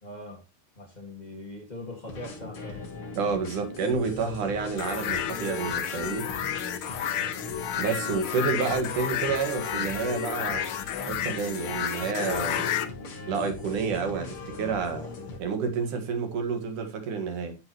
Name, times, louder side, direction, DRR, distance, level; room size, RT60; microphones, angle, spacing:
voice 1, 0.0-0.4 0.7-2.9 7.0-7.4, left 2 dB, 20° left, 1.5 m, -42 dB
sound 1, 2.1-15.4, left 3 dB, 50° left, 2.8 m, -40 dB
voice 2, 3.1-6.3 7.8-10.6 11.1-12.7 13.3-15.1 15.4-17.6, right 5 dB, 90° right, 3.3 m, -29 dB
sound 2, 4.8-12.9, left 10 dB, 65° left, 1.3 m, -31 dB
11.5 x 7.3 x 3.1 m
omnidirectional pair, 3.5 m